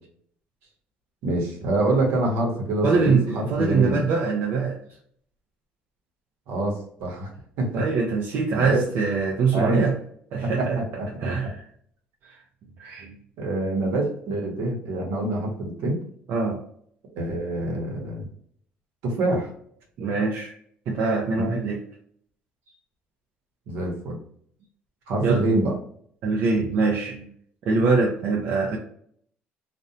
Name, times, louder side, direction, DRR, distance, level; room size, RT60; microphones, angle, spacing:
voice 1, 1.2-4.0 6.5-7.3 7.6-7.8 8.6-8.8 9.5-9.9 10.4-11.3 13.4-16.0 17.1-18.3 19.0-19.5 21.3-21.6 23.7-24.2 25.1-25.7, right 2 dB, 80° right, 0 dB, 0.9 m, -26 dB
voice 2, 2.8-4.8 7.7-9.9 10.3-10.8 11.2-11.6 12.2-12.4 12.8-13.2 16.3-16.6 20.0-20.5 20.9-21.8 25.2-25.4 26.2-27.3 27.7-28.8, right 4 dB, 60° right, -1 dB, 0.5 m, -23 dB
2.5 x 2.1 x 2.7 m, 0.63 s
cardioid pair, 120°, 4 cm